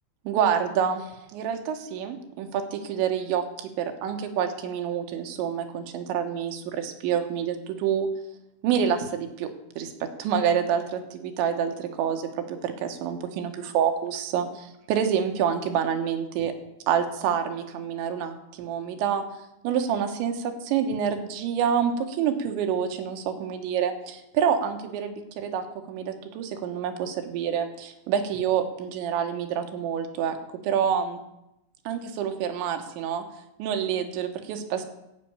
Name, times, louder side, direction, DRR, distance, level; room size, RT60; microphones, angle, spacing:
voice 1, 0.3-8.1 8.6-9.5 9.8-16.5 16.9-19.2 19.6-30.4 30.6-31.2 31.9-33.2 33.6-34.8, right 8 dB, 80° right, 6 dB, 3.4 m, -27 dB
14.5 x 5.8 x 8.7 m, 0.86 s
omnidirectional pair, 5.3 m